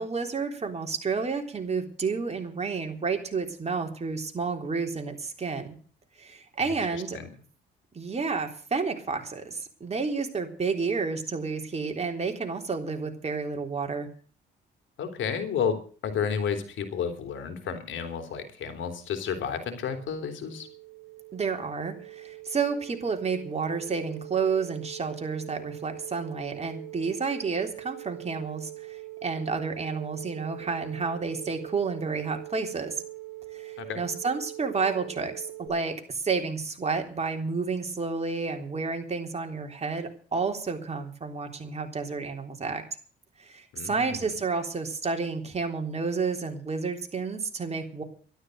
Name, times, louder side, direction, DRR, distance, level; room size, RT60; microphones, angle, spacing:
voice 1, 0.0-5.7 6.2-7.2 7.9-14.1 21.3-33.0 33.5-42.8 43.4-48.0, right 4 dB, 35° right, 4 dB, 3.6 m, -30 dB
voice 2, 6.6-7.3 15.0-20.7 33.8-34.0 43.7-44.3, left 7 dB, 70° left, 7 dB, 3.3 m, -32 dB
sound 1, 18.7-35.7, right 20 dB, 5° right, 6.0 m, -43 dB
13.0 x 12.0 x 6.5 m, 0.43 s
cardioid pair, 90°, 20 cm